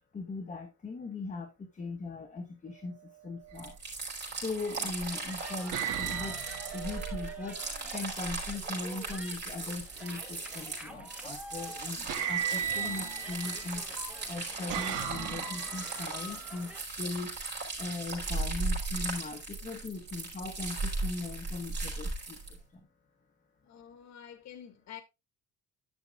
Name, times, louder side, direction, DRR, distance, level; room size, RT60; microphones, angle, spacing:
voice 1, 0.1-3.8 4.3-6.4 6.7-17.4 17.8-22.9, left 3 dB, 25° left, 1.3 m, -39 dB
sound 1, 3.4-3.7 4.6-5.1 5.7-7.8 10.0-10.5 11.6-11.7 12.1-13.7 14.3-16.0, right 9 dB, 75° right, 1.9 m, -36 dB
sound 2, 3.6-22.6, right 3 dB, 35° right, 5.6 m, -38 dB
sound 3, 4.8-16.8, equal, 5° right, 1.0 m, -48 dB
voice 2, 23.6-25.0, left 9 dB, 60° left, 1.8 m, -48 dB
11.0 x 6.4 x 3.6 m
cardioid pair, 175°, 31 cm